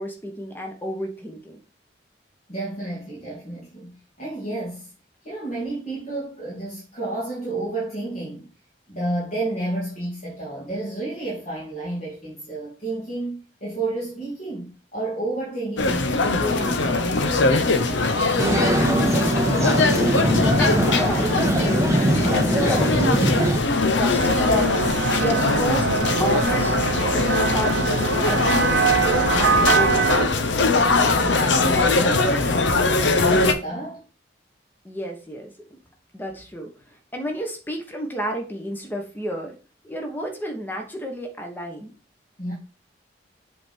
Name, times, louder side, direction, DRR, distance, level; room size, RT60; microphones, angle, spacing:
voice 1, 0.0-1.6 19.3-20.1 20.6-24.7 25.2-25.9 26.2-26.7 27.4-28.7 29.0-30.9 34.8-35.8 36.1-39.5 39.8-41.9, right 1 dB, 10° left, 1.2 m, -31 dB
voice 2, 2.5-4.9 5.2-8.5 8.9-18.5 29.3-29.7 31.2-34.0 42.4-42.5, right 2 dB, 40° left, 2.5 m, -31 dB
sound 1, 15.8-33.5, left 3 dB, 80° left, 0.8 m, -21 dB
sound 2, 18.4-23.6, right 1 dB, 15° right, 0.5 m, -22 dB
sound 3, 24.2-30.3, right 5 dB, 85° right, 0.7 m, -23 dB
7.7 x 3.6 x 4.4 m
head